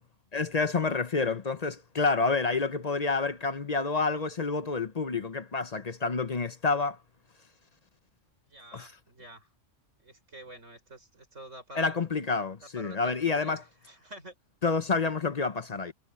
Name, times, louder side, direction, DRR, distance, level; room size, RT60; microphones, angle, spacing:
voice 1, 0.3-7.0 8.7-8.9 11.8-13.6 14.6-15.9, left 4 dB, 40° left, 0.8 m, -28 dB
voice 2, 8.4-9.5 10.0-12.1 12.7-14.4, right 1 dB, 75° right, 6.5 m, -48 dB
omnidirectional pair, 1.3 m